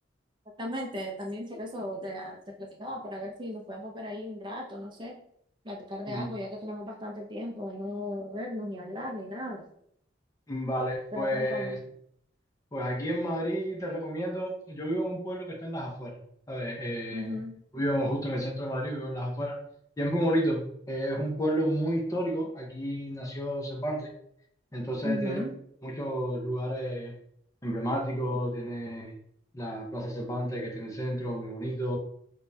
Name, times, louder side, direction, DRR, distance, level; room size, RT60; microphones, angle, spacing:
voice 1, 0.6-5.2 5.6-9.7 11.1-11.8 17.1-17.5 25.0-25.6, left 1 dB, 25° right, -1 dB, 0.5 m, -36 dB
voice 2, 10.5-11.8 12.7-16.2 16.5-17.4 17.7-19.6 20.0-24.1 24.7-25.4 25.8-27.2 27.6-29.2 29.5-32.0, equal, 20° left, 1 dB, 0.6 m, -31 dB
5.0 x 2.2 x 2.6 m, 0.68 s
head